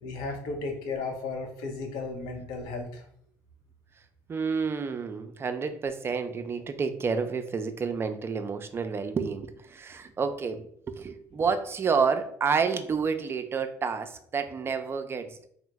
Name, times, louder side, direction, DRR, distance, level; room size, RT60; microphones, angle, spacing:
voice 1, 0.0-3.0, left 3 dB, 80° left, 3 dB, 0.7 m, -34 dB
voice 2, 4.3-15.5, right 5 dB, 35° right, 8 dB, 0.4 m, -29 dB
2.9 x 2.0 x 3.4 m, 0.65 s
supercardioid pair, 80°, 7 cm